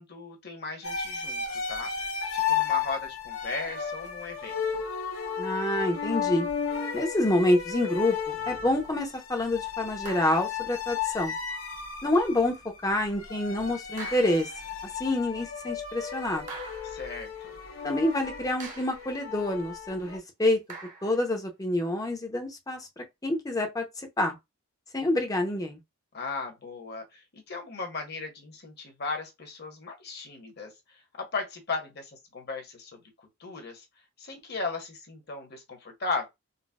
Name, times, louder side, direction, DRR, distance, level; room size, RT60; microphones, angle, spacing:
voice 1, 0.0-4.8 16.8-17.5 26.1-33.9 34.2-36.3, left 3 dB, 50° left, 1.1 m, -37 dB
sound 1, 0.8-20.2, left 7 dB, 65° left, 0.8 m, -34 dB
voice 2, 5.4-6.5 6.9-11.3 12.0-12.5 12.8-14.5 14.8-16.5 17.8-20.6 21.0-24.4 24.9-25.8, left 1 dB, 15° left, 0.7 m, -27 dB
sound 2, 10.0-10.6 12.1-12.3 14.0-14.7 16.5-17.1 18.6-19.2 20.7-21.3, right 4 dB, 35° right, 0.8 m, -43 dB
3.9 x 2.2 x 2.3 m
head